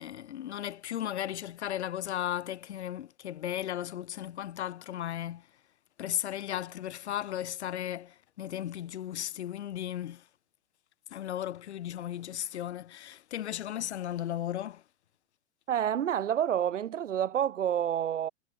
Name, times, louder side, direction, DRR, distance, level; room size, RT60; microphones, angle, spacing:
voice 1, 0.0-5.5 6.0-10.3 11.1-14.8, left 11 dB, 65° left, 3.3 m, -35 dB
voice 2, 15.7-18.3, right 10 dB, 85° right, 0.8 m, -28 dB
hypercardioid pair, 120°, 36 cm